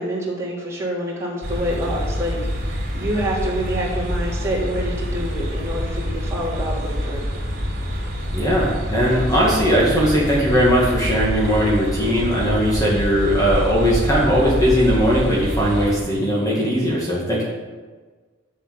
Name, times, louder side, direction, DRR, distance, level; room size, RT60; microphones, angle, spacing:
voice 1, 0.0-2.4 2.9-7.3, equal, 15° right, -6 dB, 3.3 m, -27 dB
sound 1, 1.4-16.0, equal, 50° right, 3.6 m, -26 dB
voice 2, 8.3-17.4, equal, 20° left, -5 dB, 2.2 m, -19 dB
11.0 x 6.6 x 7.7 m, 1.4 s
head